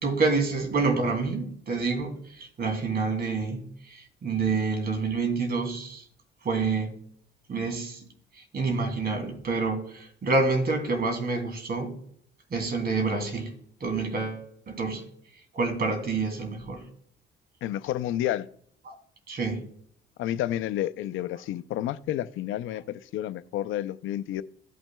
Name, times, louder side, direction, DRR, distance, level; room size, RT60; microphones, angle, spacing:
voice 1, 0.0-6.0 6.4-6.9 7.5-8.0 8.3-11.9 12.5-13.5 13.8-15.0 15.5-16.8 18.9-19.0 19.3-19.6, right 4 dB, 50° right, 2.6 m, -28 dB
voice 2, 17.6-18.5 20.2-24.4, left 12 dB, 80° left, 0.5 m, -30 dB
16.0 x 6.0 x 2.2 m
cardioid pair, 90°, 20 cm